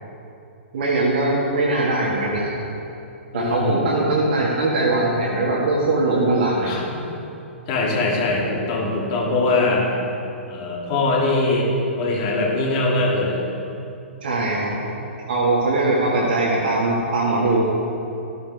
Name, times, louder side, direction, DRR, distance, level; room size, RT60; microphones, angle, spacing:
voice 1, 0.7-2.6 3.3-6.7 14.2-14.9 15.3-17.7, right 2 dB, 50° right, -6 dB, 2.2 m, -21 dB
voice 2, 3.3-3.9 6.7-7.0 7.7-9.8 10.5-11.7 12.0-13.4, left 2 dB, 35° left, -3 dB, 2.9 m, -22 dB
14.0 x 13.0 x 3.7 m, 2.8 s
figure-of-eight pair, 115°, 7 cm